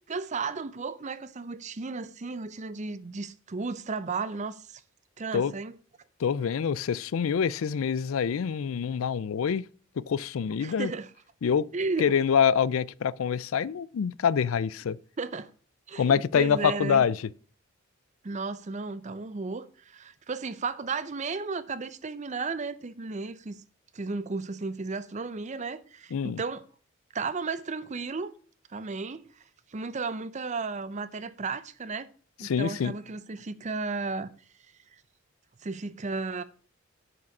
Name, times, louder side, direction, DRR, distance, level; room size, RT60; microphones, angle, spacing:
voice 1, 0.1-4.8 5.2-5.7 10.6-11.1 11.7-12.1 15.2-15.5 15.9-17.0 18.2-23.6 23.9-26.6 27.1-28.3 28.7-29.3 29.7-32.1 32.4-34.3 35.6-36.4, right 4 dB, 35° right, 0.6 m, -34 dB
voice 2, 6.2-9.7 10.0-10.9 11.4-11.7 12.0-15.0 16.0-17.2 26.1-26.4 32.4-32.9, left 7 dB, 80° left, 0.4 m, -26 dB
9.5 x 5.0 x 5.9 m
head